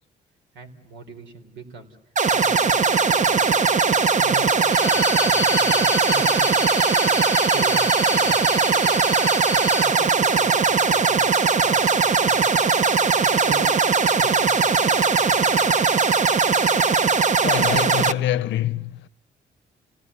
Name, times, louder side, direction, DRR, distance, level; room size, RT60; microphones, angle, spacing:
voice 1, 0.5-1.9 2.3-3.7 4.1-7.1 7.5-9.1 9.5-12.6 13.0-13.7 14.2-15.8, right 3 dB, 85° right, 3.8 m, -40 dB
sound 1, 2.2-18.1, right 5 dB, 40° right, 1.0 m, -19 dB
Bowed string instrument, 4.7-9.9, left 5 dB, 20° left, 0.9 m, -29 dB
voice 2, 17.4-19.1, left 12 dB, 85° left, 0.9 m, -25 dB
29.0 x 18.0 x 9.7 m
cardioid pair, 85°, 19 cm